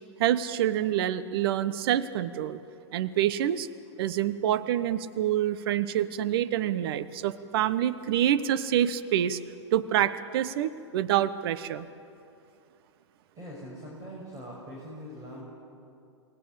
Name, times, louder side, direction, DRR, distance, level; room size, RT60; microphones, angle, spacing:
voice 1, 0.2-2.6 2.9-3.7 4.0-9.4 9.7-11.9, right 11 dB, 55° right, 14 dB, 1.0 m, -27 dB
voice 2, 13.3-15.4, equal, 20° right, -3 dB, 6.3 m, -42 dB
28.5 x 19.5 x 8.3 m, 2.6 s
hypercardioid pair, 115°, 15 cm